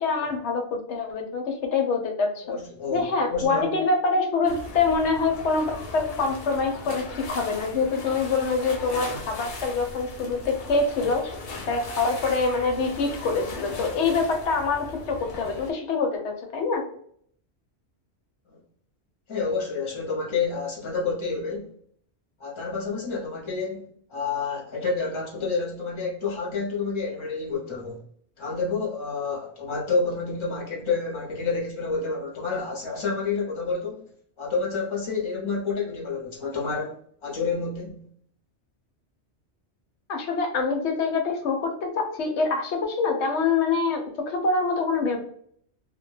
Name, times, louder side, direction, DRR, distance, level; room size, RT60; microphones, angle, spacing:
voice 1, 0.0-2.6 2.9-11.3 11.7-16.9 40.1-45.2, left 4 dB, 80° left, 4 dB, 0.9 m, -25 dB
voice 2, 2.4-3.8 18.5-18.6 19.3-21.7 22.4-28.0 28.4-34.1 34.4-36.9 37.2-38.1, left 4 dB, 30° left, -3 dB, 0.7 m, -29 dB
sound 1, 4.4-15.7, left 3 dB, 60° left, 0.8 m, -38 dB
2.2 x 2.1 x 3.1 m, 0.63 s
omnidirectional pair, 1.2 m